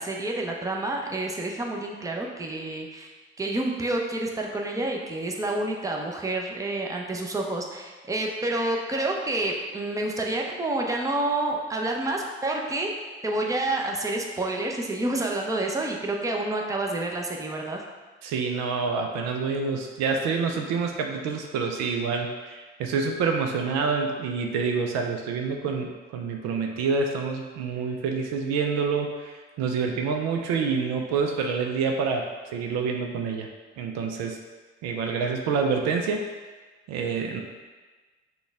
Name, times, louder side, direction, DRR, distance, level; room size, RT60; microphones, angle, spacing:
voice 1, 0.0-12.9 13.2-17.8, right 2 dB, 10° right, 0 dB, 0.7 m, -29 dB
voice 2, 18.2-33.5 33.8-34.4 34.8-36.3 36.9-37.4, right 5 dB, 65° right, 3 dB, 0.6 m, -27 dB
6.0 x 2.3 x 3.4 m, 1.3 s
hypercardioid pair, 55°, 29 cm